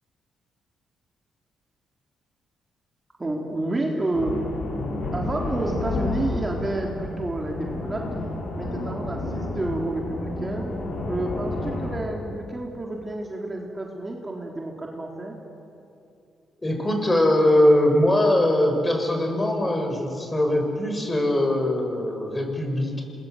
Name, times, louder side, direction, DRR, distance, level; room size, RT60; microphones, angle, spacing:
voice 1, 3.2-4.4 5.1-8.1 8.6-10.8 11.1-15.3, right 2 dB, 25° right, 0 dB, 3.5 m, -30 dB
sound 1, 4.1-12.0, left 2 dB, 70° left, 7.9 m, -30 dB
voice 2, 16.6-23.0, left 1 dB, 20° left, 3 dB, 6.1 m, -21 dB
27.0 x 21.5 x 8.0 m, 2.6 s
cardioid pair, 80°, 0 cm